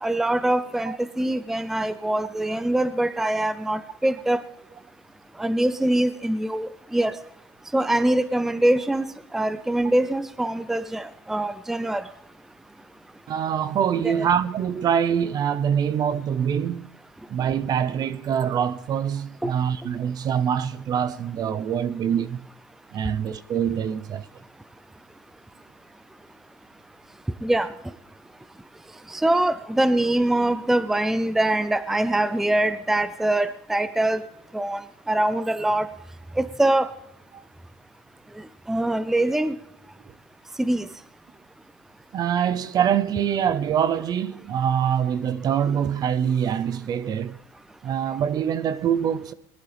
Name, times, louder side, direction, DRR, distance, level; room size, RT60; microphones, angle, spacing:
voice 1, 0.0-4.4 5.4-7.2 7.7-9.0 9.3-12.1 14.0-14.3 19.4-19.5 27.4-27.7 29.1-34.2 34.5-34.8 35.1-35.9 36.4-36.9 38.7-39.6 40.6-40.9, right 1 dB, 5° right, 0.5 m, -23 dB
voice 2, 13.3-16.9 17.3-22.5 22.9-24.3 37.3-37.4 42.1-47.4 47.8-49.3, right 8 dB, 40° right, 0.7 m, -24 dB
20.0 x 12.0 x 3.4 m
supercardioid pair, 125°, 11 cm